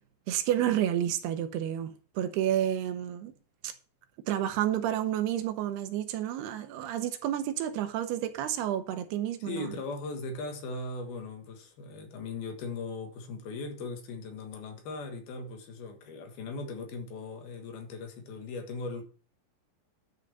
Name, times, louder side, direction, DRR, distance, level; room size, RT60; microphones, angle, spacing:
voice 1, 0.3-3.3 3.6-3.7 4.3-9.7, right 11 dB, 80° right, 2.8 m, -30 dB
voice 2, 9.4-19.0, left 3 dB, 70° left, 3.2 m, -39 dB
10.5 x 5.6 x 6.6 m
omnidirectional pair, 4.8 m